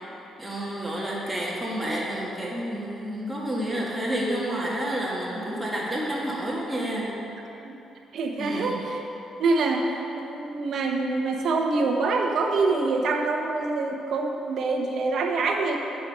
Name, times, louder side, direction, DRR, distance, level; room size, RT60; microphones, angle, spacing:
voice 1, 0.4-7.1 8.4-8.8, right 1 dB, 5° right, -6 dB, 1.6 m, -29 dB
voice 2, 8.1-9.0 9.4-15.8, right 3 dB, 65° right, 2 dB, 0.8 m, -25 dB
9.3 x 4.7 x 5.4 m, 3.0 s
cardioid pair, 90°, 0 cm